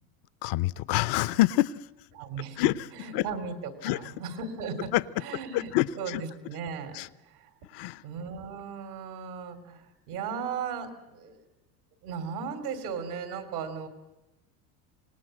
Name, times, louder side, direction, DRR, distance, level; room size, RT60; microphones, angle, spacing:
voice 1, 0.4-1.8 2.6-2.9 3.1-3.2 3.8-4.0 4.9-5.0 5.5-6.2 6.9-7.1 7.7-8.0, left 16 dB, 65° left, 17 dB, 0.8 m, -26 dB
voice 2, 2.1-2.7 2.9-4.9 5.2-7.5 8.0-11.5 12.0-13.9, right 6 dB, 85° right, 6 dB, 3.4 m, -37 dB
26.5 x 19.0 x 7.8 m, 0.99 s
supercardioid pair, 95°, 44 cm